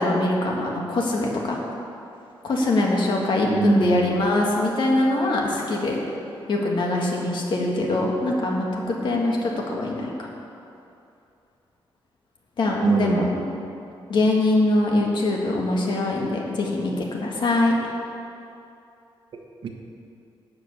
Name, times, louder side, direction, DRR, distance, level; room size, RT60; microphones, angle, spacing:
voice 1, 0.0-1.6 2.4-6.0 6.5-10.3 12.6-13.3 14.1-17.7, left 2 dB, 60° left, -1 dB, 1.8 m, -23 dB
voice 2, 3.4-4.1 12.8-13.3 19.3-19.7, right 4 dB, 65° right, 3 dB, 1.2 m, -23 dB
12.0 x 5.2 x 8.3 m, 2.7 s
wide cardioid pair, 140°, 9 cm